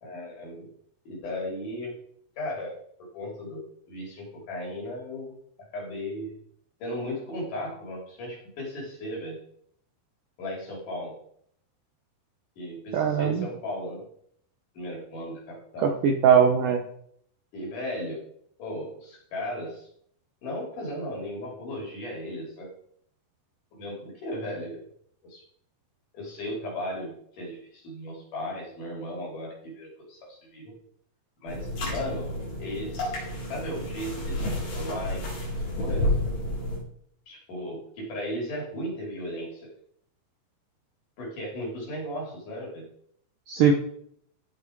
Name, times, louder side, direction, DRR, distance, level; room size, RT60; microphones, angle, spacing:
voice 1, 0.0-0.7 1.0-1.9 2.4-5.4 5.7-6.4 6.8-9.4 10.4-11.1 12.6-14.1 14.7-16.0 17.5-18.2 18.6-19.9 20.4-22.7 23.7-24.9 25.2-25.4 26.1-30.8 31.4-35.3 35.8-36.4 37.3-39.7 41.2-42.8, left 1 dB, 50° left, -1 dB, 4.7 m, -36 dB
voice 2, 12.9-13.5 15.8-16.8 43.5-43.8, right 7 dB, 70° right, 4 dB, 2.1 m, -20 dB
sound 1, 31.5-36.8, left 1 dB, 90° left, 7.1 m, -30 dB
16.5 x 5.9 x 4.6 m, 0.66 s
omnidirectional pair, 4.8 m